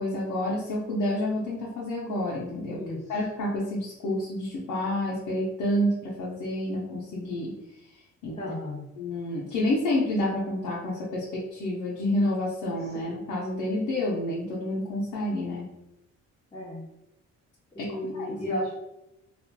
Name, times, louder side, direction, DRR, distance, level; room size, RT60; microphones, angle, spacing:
voice 1, 0.0-2.8 3.1-7.5 8.2-8.4 9.0-15.7 17.8-18.7, left 1 dB, 80° left, -5 dB, 0.7 m, -29 dB
voice 2, 2.7-3.0 8.4-8.9 16.5-16.9 17.7-18.7, left 1 dB, 15° left, -8 dB, 0.8 m, -33 dB
2.9 x 2.4 x 2.2 m, 0.87 s
cardioid pair, 90°, 30 cm